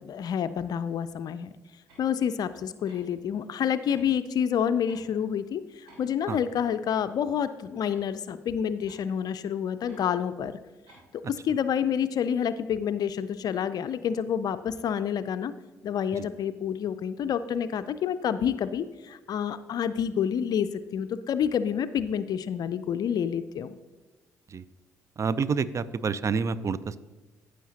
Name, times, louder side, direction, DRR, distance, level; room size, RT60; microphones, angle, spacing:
voice 1, 0.0-1.5 2.0-10.6 11.1-15.5 15.8-23.8, left 8 dB, 55° left, 12 dB, 0.4 m, -28 dB
sound 1, 1.9-2.1 2.9-3.1 3.9-4.1 4.9-5.1 5.9-6.1 6.9-7.1 7.9-8.0 8.9-9.1 9.9-10.1 10.9-11.1, right 2 dB, 75° right, 2.9 m, -54 dB
voice 2, 25.2-27.0, right 5 dB, 40° right, 17 dB, 0.5 m, -28 dB
14.5 x 6.3 x 2.8 m, 1.2 s
hypercardioid pair, 45°, 8 cm